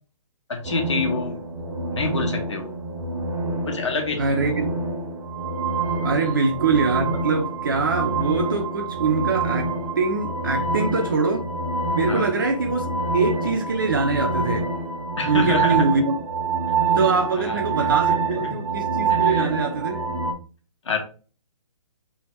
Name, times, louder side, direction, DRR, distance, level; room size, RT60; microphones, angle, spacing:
voice 1, 0.5-1.4 1.9-2.8 3.6-4.2 6.2-6.4 12.1-12.3 15.2-15.8 17.4-18.6 19.1-19.5 20.8-21.0, left 3 dB, 60° left, 1.3 m, -28 dB
sound 1, 0.6-20.3, right 4 dB, 80° right, 1.3 m, -26 dB
voice 2, 4.2-4.7 6.0-9.7 10.0-11.4 11.9-14.7 15.2-16.1 17.0-20.0, right 4 dB, 40° right, 0.6 m, -23 dB
4.5 x 3.5 x 3.0 m
hypercardioid pair, 180°, 17 cm